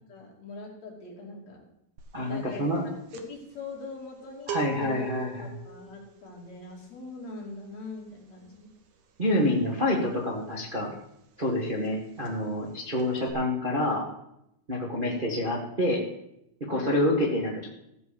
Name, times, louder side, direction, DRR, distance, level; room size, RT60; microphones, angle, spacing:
voice 1, 0.1-1.6 2.2-2.6 3.3-4.5 4.8-5.0 5.4-8.7 16.7-17.0, left 3 dB, 50° left, -2 dB, 3.8 m, -42 dB
sound 1, 2.0-2.3 2.5-11.1 11.4-11.6 11.8-12.7 13.0-13.3, right 6 dB, 60° right, 2.1 m, -42 dB
voice 2, 2.1-2.9 4.5-5.5 9.2-10.9 11.4-14.0 14.7-16.0 16.7-17.7, left 1 dB, 25° right, -3 dB, 1.0 m, -27 dB
15.5 x 5.6 x 7.0 m, 0.80 s
omnidirectional pair, 4.1 m